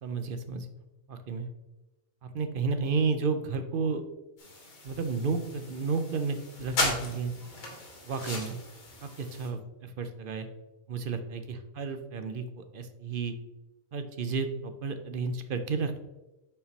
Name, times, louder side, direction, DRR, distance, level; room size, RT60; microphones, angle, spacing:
voice 1, 0.0-0.7 1.1-1.5 2.2-4.0 4.8-7.3 8.0-8.6 9.0-10.5 10.9-13.3 13.9-16.1, right 4 dB, 55° right, 8 dB, 0.6 m, -32 dB
sound 1, 4.4-9.5, left 2 dB, 80° left, 2.2 m, -36 dB
5.4 x 4.6 x 5.3 m, 1.0 s
omnidirectional pair, 1.4 m